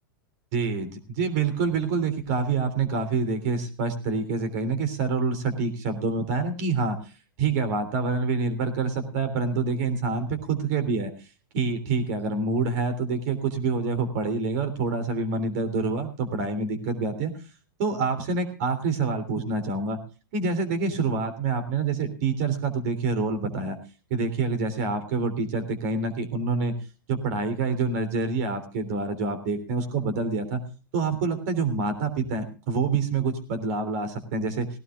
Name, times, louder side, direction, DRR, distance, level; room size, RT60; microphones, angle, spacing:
voice 1, 0.5-7.0 7.4-11.1 11.5-17.3 17.8-20.0 20.3-23.8 24.1-26.7 27.1-30.6 30.9-34.7, right 4 dB, 50° right, 10 dB, 3.3 m, -27 dB
19.0 x 17.5 x 2.4 m, 0.34 s
figure-of-eight pair, 100°, 11 cm